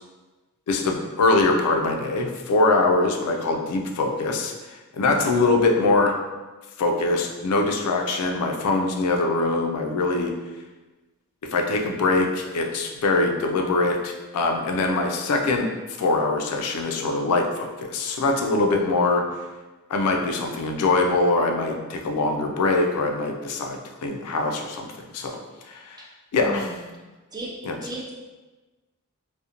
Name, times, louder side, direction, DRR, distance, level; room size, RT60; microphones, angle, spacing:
voice 1, 0.7-4.5 5.0-6.1 6.8-10.3 11.5-15.7 16.0-19.2 19.9-24.9 25.1-25.4 25.7-26.0 26.3-26.7 27.7-27.8, left 3 dB, 80° left, 3 dB, 0.4 m, -23 dB
voice 2, 5.0-5.4 18.8-18.9 26.0-26.1 26.4-26.9 27.3-27.5 27.8-28.1, right 1 dB, 20° right, -3 dB, 0.4 m, -35 dB
2.4 x 2.1 x 2.8 m, 1.2 s
head